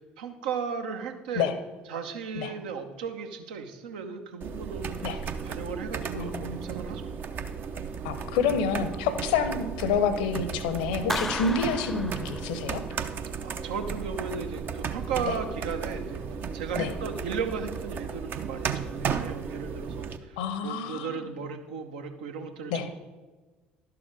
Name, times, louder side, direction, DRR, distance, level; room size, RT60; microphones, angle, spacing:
voice 1, 0.2-1.5 1.9-7.0 9.3-9.5 13.4-16.2 16.5-22.9, right 6 dB, 65° right, 6 dB, 0.9 m, -36 dB
sound 1, 4.4-20.2, right 6 dB, 40° right, 0.7 m, -35 dB
voice 2, 6.2-6.7 8.0-12.8 15.3-15.4 16.8-16.9 20.4-21.2 22.7-22.9, left 5 dB, 65° left, 10 dB, 0.8 m, -28 dB
Clapping, 11.1-13.0, left 1 dB, 5° left, 0.4 m, -35 dB
11.5 x 6.9 x 4.8 m, 1.3 s
figure-of-eight pair, 55°, 5 cm